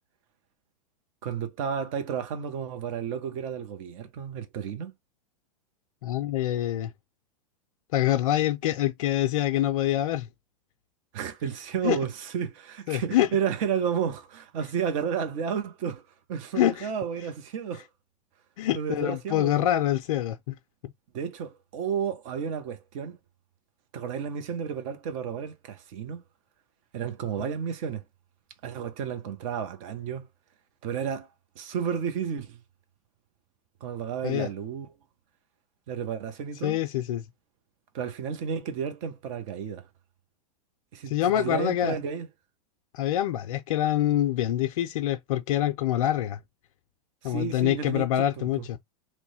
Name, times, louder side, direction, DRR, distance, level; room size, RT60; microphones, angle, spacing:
voice 1, 1.2-4.9 11.1-16.0 16.3-17.8 18.7-19.7 21.1-23.2 23.9-26.2 26.9-28.0 28.6-30.3 30.8-31.3 31.6-32.6 33.8-34.9 35.9-36.8 37.9-39.9 40.9-42.3 47.2-48.5, right 7 dB, 60° right, 0.9 m, -32 dB
voice 2, 6.0-6.9 7.9-10.3 11.8-12.0 12.9-13.3 16.5-16.9 18.6-20.6 34.2-34.5 36.6-37.3 41.1-42.0 42.9-46.4 47.2-48.8, left 12 dB, 70° left, 0.4 m, -25 dB
3.0 x 2.1 x 4.0 m
hypercardioid pair, 105°, 18 cm